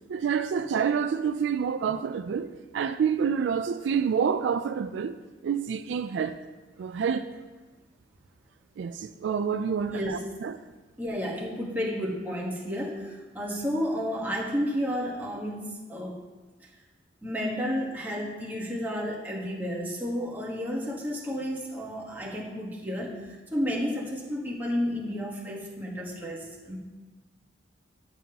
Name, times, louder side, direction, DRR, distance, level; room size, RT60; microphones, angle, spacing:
voice 1, 0.1-5.2 5.4-6.4 6.8-7.3 8.8-10.5, right 7 dB, 70° right, 0.3 m, -28 dB
voice 2, 9.9-10.2 11.0-16.2 16.6-16.7 17.2-26.8, equal, 10° right, 1.3 m, -31 dB
11.0 x 6.9 x 2.9 m
head